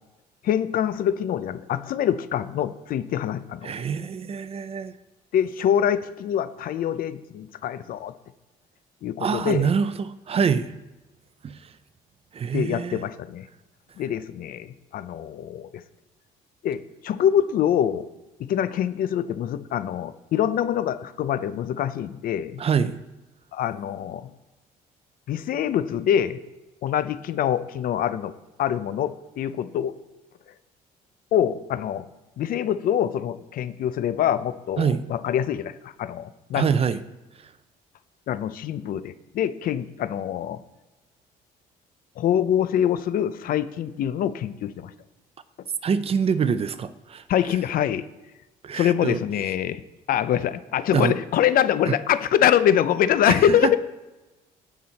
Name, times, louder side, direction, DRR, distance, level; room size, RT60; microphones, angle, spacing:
voice 1, 0.4-3.8 5.3-8.1 9.0-9.7 12.5-13.5 14.0-15.8 16.6-18.0 18.4-22.6 23.5-24.3 25.3-26.4 26.8-28.3 28.6-29.9 31.3-32.0 32.4-36.7 38.3-40.6 42.2-44.9 47.3-48.0 48.7-49.8 50.1-53.8, left 10 dB, 65° left, 13 dB, 0.7 m, -24 dB
voice 2, 3.6-4.9 9.2-10.7 11.4-11.6 12.3-13.1 22.6-22.9 34.8-35.0 36.5-37.0 45.8-47.2 48.6-49.2 50.9-51.1 51.9-52.0 53.3-53.7, right 6 dB, 40° right, 13 dB, 0.7 m, -25 dB
16.5 x 6.2 x 4.2 m, 1.1 s
cardioid pair, 95°, 16 cm